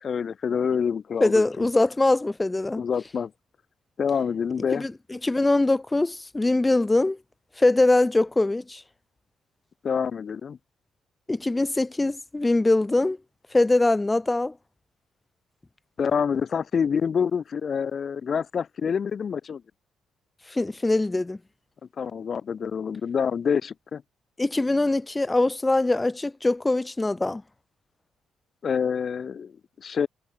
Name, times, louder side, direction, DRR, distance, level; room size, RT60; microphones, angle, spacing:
voice 1, 0.0-1.6 2.7-3.3 4.0-4.9 9.8-10.6 16.0-19.6 22.0-24.0 28.6-30.1, left 6 dB, 50° left, 2.3 m, -27 dB
voice 2, 1.2-2.8 4.7-7.2 7.6-8.8 11.3-13.2 13.5-14.5 20.5-21.4 24.4-27.4, left 2 dB, 15° left, 0.6 m, -22 dB
cardioid pair, 90°, 0 cm